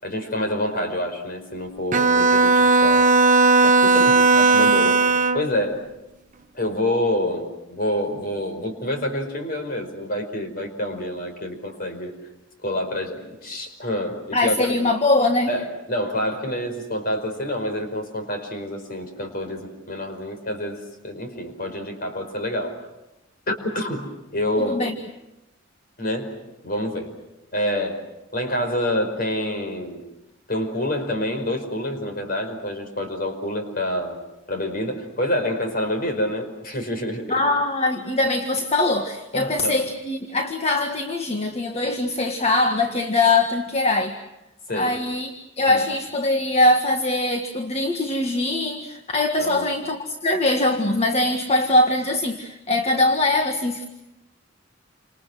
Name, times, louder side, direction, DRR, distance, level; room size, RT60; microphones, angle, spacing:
voice 1, 0.0-3.3 3.8-5.0 5.3-5.9 6.5-12.1 12.6-14.7 15.5-22.8 23.5-24.8 26.0-27.1 27.5-28.0 28.3-30.1 30.5-34.2 34.5-37.4 39.3-39.8 44.7-45.0 45.7-45.8 49.4-49.7, left 1 dB, 50° left, 5 dB, 5.2 m, -27 dB
Bowed string instrument, 1.9-5.5, right 3 dB, 40° right, 1.0 m, -16 dB
voice 2, 14.3-15.5 24.6-24.9 37.3-44.1 44.7-53.9, left 2 dB, 35° left, 5 dB, 1.6 m, -22 dB
29.0 x 27.5 x 6.3 m, 0.94 s
head